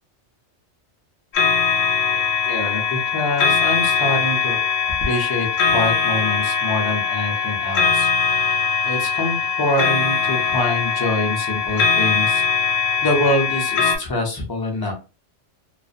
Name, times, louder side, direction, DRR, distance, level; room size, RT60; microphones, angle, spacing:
sound 1, 1.3-14.0, left 6 dB, 70° left, 0.9 m, -21 dB
voice 1, 2.5-4.6 5.0-14.9, left 1 dB, 25° left, 1 dB, 0.5 m, -25 dB
2.4 x 2.1 x 2.5 m, 0.31 s
omnidirectional pair, 1.2 m